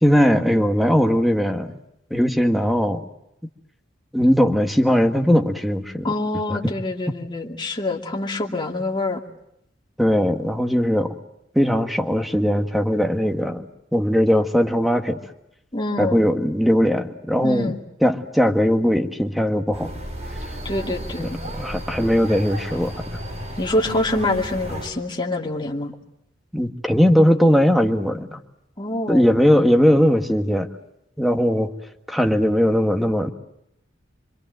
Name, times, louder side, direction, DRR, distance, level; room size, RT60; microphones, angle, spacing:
voice 1, 0.0-1.8 2.1-3.0 4.1-6.1 6.5-6.6 10.0-11.1 11.6-15.2 16.0-17.7 18.0-19.9 21.2-21.3 21.6-22.9 26.5-28.4 29.1-30.7 31.2-31.7 32.1-33.3, equal, ahead, 6 dB, 1.7 m, -19 dB
voice 2, 6.0-9.2 15.7-16.3 17.4-17.8 20.6-21.4 23.6-25.9 28.8-29.3, left 2 dB, 25° left, 1 dB, 2.5 m, -25 dB
sound 1, 19.7-24.9, equal, 35° right, 6.0 m, -33 dB
26.0 x 25.5 x 7.7 m, 0.80 s
head